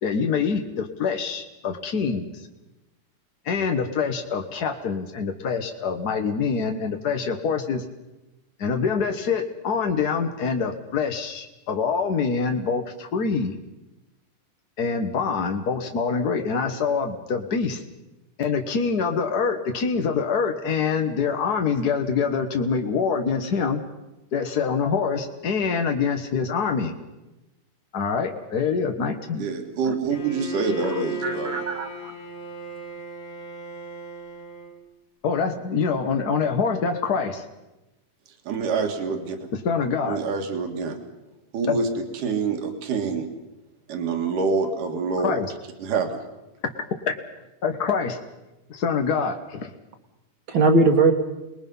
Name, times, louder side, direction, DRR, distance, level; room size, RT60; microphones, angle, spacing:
voice 1, 0.0-2.5 3.4-7.8 8.6-13.5 14.8-17.8 18.4-23.8 24.3-26.9 27.9-29.5 35.2-37.5 39.5-40.2 41.7-41.8 45.2-45.5 47.6-48.2 48.7-49.7, left 5 dB, 65° left, 5 dB, 0.9 m, -25 dB
voice 2, 29.4-31.6 38.5-39.4 40.1-41.0 41.5-41.9 42.2-43.3 43.9-45.4 45.8-46.2, right 4 dB, 80° right, 5 dB, 3.4 m, -26 dB
Bowed string instrument, 30.1-34.8, right 1 dB, 80° left, 3.6 m, -36 dB
voice 3, 31.2-32.1 50.5-51.1, right 3 dB, 50° right, 6 dB, 1.7 m, -20 dB
29.5 x 20.5 x 5.5 m, 0.99 s
omnidirectional pair, 3.7 m